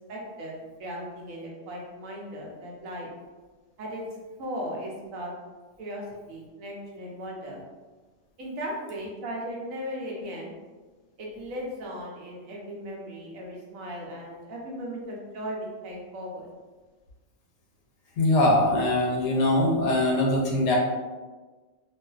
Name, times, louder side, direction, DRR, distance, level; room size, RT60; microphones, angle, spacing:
voice 1, 0.1-0.5 0.8-3.1 3.8-4.0 4.4-5.3 5.8-6.0 6.3-7.6 8.4-10.5 11.2-16.5, equal, 85° right, -2 dB, 1.1 m, -37 dB
voice 2, 18.2-20.8, left 1 dB, 65° left, -2 dB, 0.9 m, -22 dB
2.5 x 2.3 x 2.3 m, 1.3 s
omnidirectional pair, 1.4 m